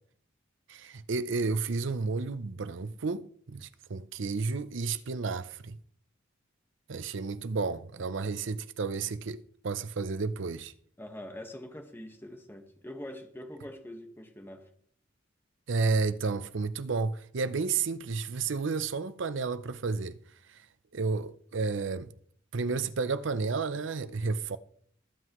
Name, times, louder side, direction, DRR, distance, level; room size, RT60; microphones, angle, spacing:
voice 1, 0.7-5.8 6.9-10.7 15.7-20.2 20.5-20.7 20.9-22.1 22.5-24.6, right 4 dB, 65° right, 0.6 m, -31 dB
voice 2, 11.0-14.6, left 1 dB, 10° left, 1.4 m, -44 dB
22.0 x 7.8 x 3.1 m
head